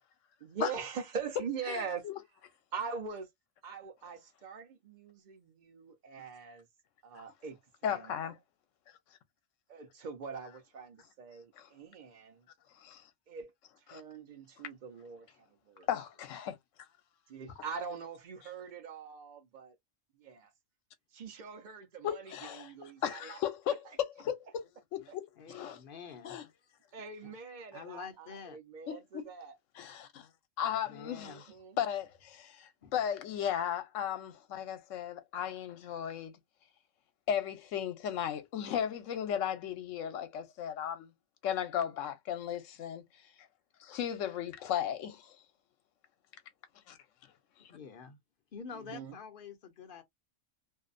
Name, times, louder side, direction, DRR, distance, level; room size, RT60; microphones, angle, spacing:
voice 1, 0.4-2.0 2.7-3.3 3.6-6.7 7.0-8.1 9.7-12.5 13.3-13.5 13.8-15.9 17.3-19.8 20.1-20.5 21.1-23.4 26.9-29.6 31.0-31.8 48.7-49.2, right 5 dB, 45° right, 0.8 m, -43 dB
voice 2, 1.7-2.1 7.2-7.3 7.8-8.4 11.6-11.7 12.8-13.0 13.9-14.0 15.9-16.6 22.0-22.7 23.0-25.2 25.5-25.8 26.2-26.5 28.9-29.3 29.8-30.3 30.6-31.4 31.8-36.4 37.3-41.1 41.4-43.0 43.8-45.4 46.9-47.0, left 9 dB, 80° left, 1.0 m, -35 dB
voice 3, 25.4-26.4 27.2-27.3 27.7-28.6 30.9-31.4 32.8-32.9 44.2-44.3 44.6-44.7 47.7-48.2 48.5-50.0, left 6 dB, 55° left, 0.7 m, -47 dB
2.7 x 2.0 x 2.5 m
omnidirectional pair, 1.3 m